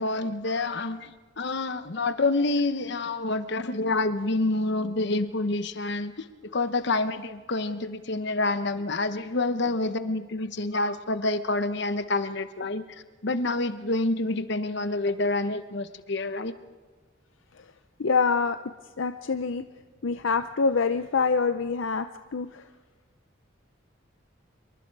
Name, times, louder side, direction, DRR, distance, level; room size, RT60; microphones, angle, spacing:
voice 1, 0.0-12.8 13.2-16.5, left 2 dB, 60° left, 11 dB, 1.0 m, -28 dB
voice 2, 18.0-18.6 19.0-19.6 20.0-22.6, left 4 dB, 75° left, 10 dB, 0.6 m, -25 dB
27.0 x 23.0 x 4.7 m, 1.3 s
head